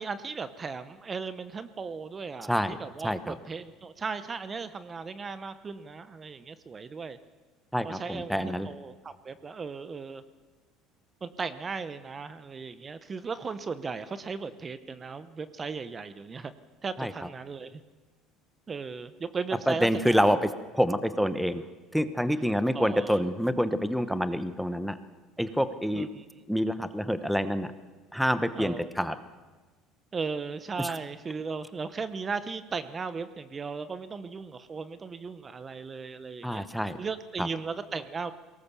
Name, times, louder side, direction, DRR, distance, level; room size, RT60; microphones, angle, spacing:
voice 1, 0.0-7.2 7.8-10.2 11.2-16.5 16.8-17.8 18.7-20.2 22.7-23.2 25.9-26.2 28.6-29.1 30.1-36.7 37.0-38.3, right 5 dB, 25° right, 13 dB, 0.8 m, -36 dB
voice 2, 3.0-3.4 7.7-8.7 17.0-17.1 19.7-21.6 21.9-25.0 25.4-26.1 26.5-27.7 28.1-29.2 30.8-31.0 36.4-37.0 37.4-37.5, equal, ahead, 12 dB, 1.0 m, -27 dB
22.0 x 18.5 x 6.9 m, 1.3 s
supercardioid pair, 110°, 0 cm